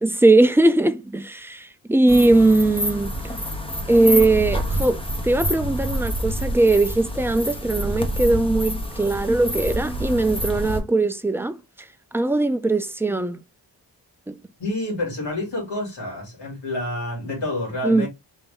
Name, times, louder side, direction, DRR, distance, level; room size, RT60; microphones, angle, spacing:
voice 1, 0.0-3.4 3.9-11.6 12.1-13.4 14.3-14.4 17.8-18.1, right 2 dB, 5° right, 0.4 m, -20 dB
sound 1, 2.1-10.8, equal, 15° left, 1.1 m, -27 dB
voice 2, 14.6-18.1, left 1 dB, 80° left, 3.0 m, -28 dB
4.4 x 2.6 x 3.6 m
wide cardioid pair, 95°, 42 cm